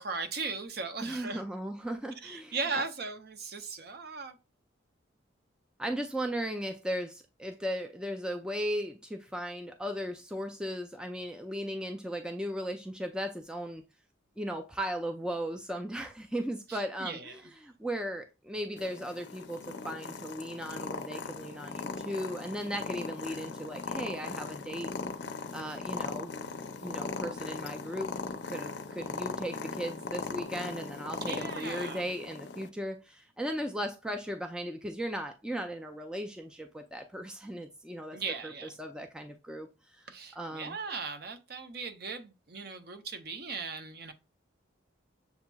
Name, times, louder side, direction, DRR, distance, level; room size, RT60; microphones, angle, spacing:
voice 1, 0.0-1.4 2.2-4.4 16.7-17.3 31.2-32.0 38.1-38.7 40.1-44.1, right 4 dB, 50° right, 0.7 m, -38 dB
voice 2, 1.0-2.8 5.8-13.8 14.4-24.9 25.5-26.3 26.8-28.1 28.5-40.8, equal, 5° right, 0.3 m, -37 dB
Purr, 18.8-32.7, left 4 dB, 60° left, 0.5 m, -39 dB
6.9 x 2.8 x 2.3 m
head